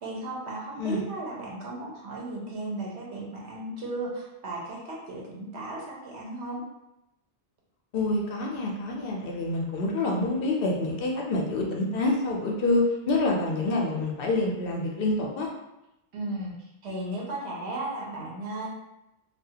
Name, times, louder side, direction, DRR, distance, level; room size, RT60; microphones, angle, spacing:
voice 1, 0.0-6.6 16.1-18.7, right 1 dB, 85° right, -3 dB, 1.0 m, -35 dB
voice 2, 7.9-15.5, left 2 dB, 65° left, -1 dB, 0.7 m, -27 dB
2.3 x 2.3 x 2.7 m, 0.91 s
omnidirectional pair, 1.1 m